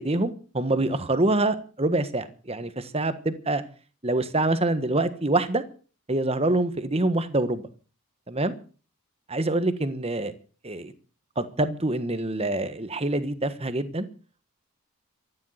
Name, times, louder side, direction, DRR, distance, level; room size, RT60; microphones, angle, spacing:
voice 1, 0.0-3.6 4.0-5.6 6.1-7.7 8.3-8.5 9.3-10.3 10.6-10.9 11.4-14.1, right 2 dB, 25° right, 1.4 m, -25 dB
14.0 x 10.5 x 8.0 m
head